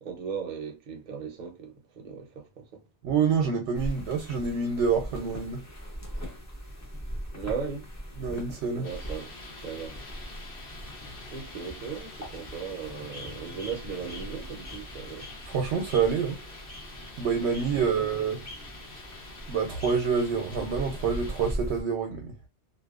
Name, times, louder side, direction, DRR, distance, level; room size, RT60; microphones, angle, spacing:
voice 1, 0.0-2.8 7.3-7.9 8.7-9.3 9.6-9.9 11.3-15.3 17.7-18.0, right 6 dB, 50° right, 0.7 m, -37 dB
voice 2, 3.0-5.6 8.2-8.9 15.4-16.4 17.2-18.4 19.5-22.3, right 6 dB, 80° right, 0.9 m, -27 dB
sound 1, 3.7-21.8, equal, 20° left, 0.6 m, -41 dB
sound 2, 8.8-21.5, left 2 dB, 70° left, 1.1 m, -46 dB
2.6 x 2.2 x 2.3 m
omnidirectional pair, 1.1 m